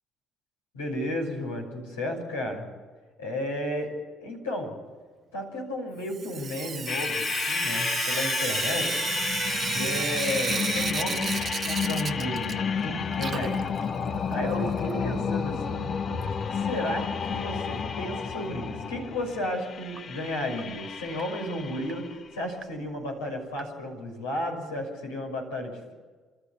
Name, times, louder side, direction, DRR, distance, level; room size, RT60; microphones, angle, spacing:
voice 1, 0.7-2.7 3.2-3.9 4.2-4.7 5.3-9.0 9.7-13.9 14.3-16.2 16.5-25.9, left 1 dB, 90° left, -1 dB, 6.3 m, -33 dB
Sink (filling or washing) / Drip, 6.1-12.8 13.1-15.0 16.2-16.3 16.6-16.7 17.0-17.1 20.0-20.1 20.6-20.7 21.2-21.3 21.9-22.0 22.6-22.7 23.6-23.7, right 7 dB, 45° right, 0.7 m, -33 dB
sound 1, 6.9-22.2, left 6 dB, 50° left, 0.9 m, -31 dB
30.0 x 13.0 x 8.4 m, 1.4 s
hypercardioid pair, 55°, 0 cm